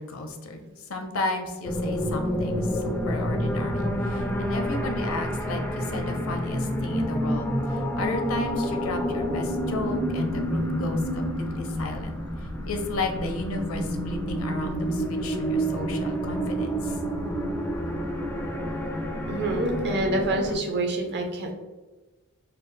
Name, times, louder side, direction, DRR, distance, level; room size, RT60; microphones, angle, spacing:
voice 1, 0.0-7.5 7.7-12.2 12.6-17.0, left 2 dB, 65° left, 5 dB, 0.6 m, -33 dB
sound 1, 1.6-20.6, equal, 10° left, 0.3 m, -29 dB
voice 2, 19.3-21.5, right 1 dB, 50° right, 2 dB, 0.6 m, -27 dB
4.2 x 2.3 x 3.2 m, 1.2 s
head